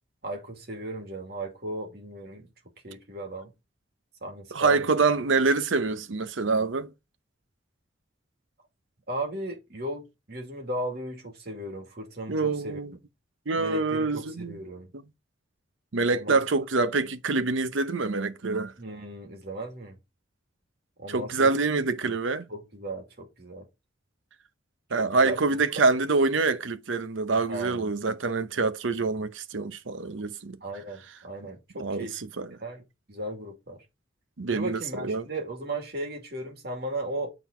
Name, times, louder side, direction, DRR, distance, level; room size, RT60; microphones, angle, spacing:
voice 1, 0.2-2.5 2.8-3.5 4.2-4.9 9.1-12.8 13.6-14.9 16.1-16.4 18.8-20.0 21.0-21.5 22.5-23.7 25.0-25.6 27.5-27.9 30.6-32.2 32.6-33.8 34.5-37.3, right 1 dB, 55° right, 2.4 m, -36 dB
voice 2, 4.5-6.9 12.3-12.9 13.5-14.6 15.9-18.7 21.1-22.4 24.9-30.6 31.8-32.6 34.4-35.3, right 3 dB, 85° right, 0.8 m, -26 dB
9.1 x 4.1 x 4.4 m
head